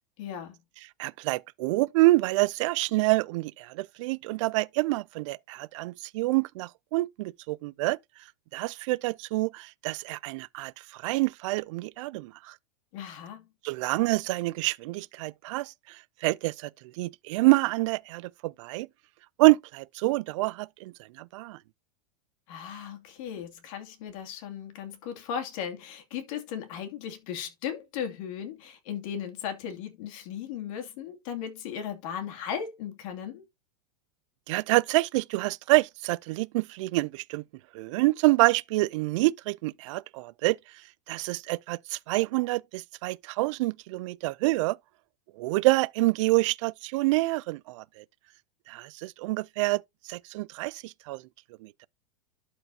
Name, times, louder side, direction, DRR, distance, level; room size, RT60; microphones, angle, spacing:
voice 1, 0.2-0.6 12.9-13.5 22.5-33.4, left 8 dB, 50° left, 2.5 m, -37 dB
voice 2, 1.0-8.0 8.5-12.5 13.6-16.7 17.0-18.9 19.4-21.6 34.5-37.4 37.7-40.6 41.1-44.8 45.4-48.0 48.7-49.8 50.1-51.2 51.6-51.9, right 21 dB, 50° right, 0.4 m, -27 dB
12.0 x 4.5 x 2.8 m
supercardioid pair, 160°, 21 cm